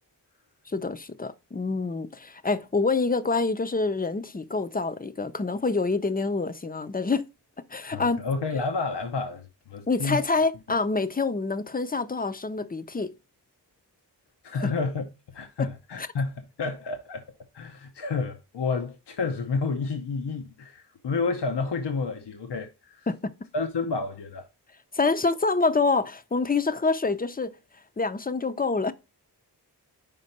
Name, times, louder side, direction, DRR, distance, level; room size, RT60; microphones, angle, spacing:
voice 1, 0.7-7.2 7.7-8.2 9.9-13.1 14.6-14.7 15.6-15.7 16.0-16.1 23.1-23.3 24.9-27.5 28.0-28.9, left 3 dB, 20° left, 0.5 m, -26 dB
voice 2, 7.8-10.2 14.4-15.1 15.3-17.2 17.5-23.1 23.5-24.5, left 4 dB, 75° left, 0.8 m, -30 dB
5.3 x 4.3 x 4.1 m
cardioid pair, 45°, 41 cm